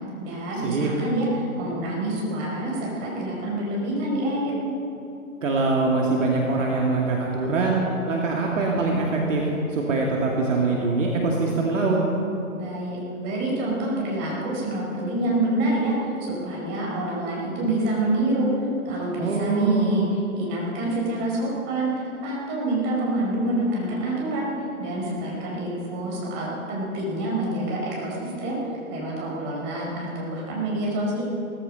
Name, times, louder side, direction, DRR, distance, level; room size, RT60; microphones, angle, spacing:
voice 1, 0.2-4.5 12.5-18.5 18.8-20.0 20.3-24.5 24.8-28.6 28.9-31.2, right 1 dB, 25° right, -3 dB, 5.0 m, -27 dB
voice 2, 5.4-9.4 9.7-12.0 19.2-19.9, right 3 dB, 60° right, -2 dB, 2.5 m, -23 dB
17.0 x 15.0 x 5.4 m, 2.8 s
figure-of-eight pair, 135°, 43 cm